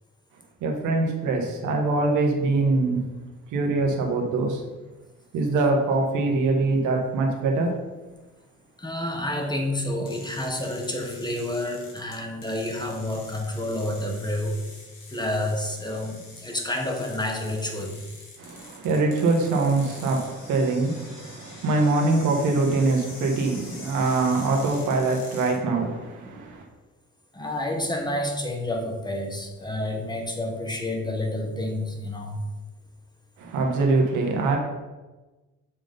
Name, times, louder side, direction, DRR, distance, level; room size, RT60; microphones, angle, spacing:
voice 1, 0.6-3.0 3.5-4.6 5.3-7.7 18.4-26.6 33.4-34.6, right 3 dB, 90° right, 1 dB, 1.4 m, -23 dB
voice 2, 8.8-14.6 15.1-18.0 27.3-32.4, left 1 dB, 15° left, 2 dB, 1.2 m, -29 dB
sound 1, 10.1-25.6, left 3 dB, 80° left, 2.2 m, -45 dB
7.2 x 3.8 x 5.1 m, 1.2 s
cardioid pair, 90°, 30 cm